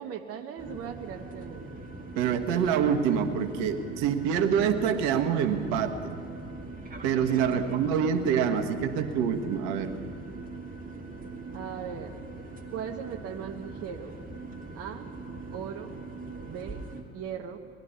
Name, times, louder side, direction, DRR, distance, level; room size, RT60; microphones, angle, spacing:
voice 1, 0.0-1.8 7.4-8.0 11.5-12.1 12.7-14.2 14.7-15.1 15.5-16.0 16.4-16.8 17.1-17.6, right 8 dB, 40° right, 4 dB, 0.9 m, -38 dB
sound 1, 0.6-17.0, right 3 dB, 25° right, 2.0 m, -41 dB
voice 2, 2.1-6.2 7.0-9.9, right 7 dB, 60° right, 8 dB, 1.3 m, -26 dB
21.0 x 12.0 x 5.6 m, 2.4 s
hypercardioid pair, 70°, 36 cm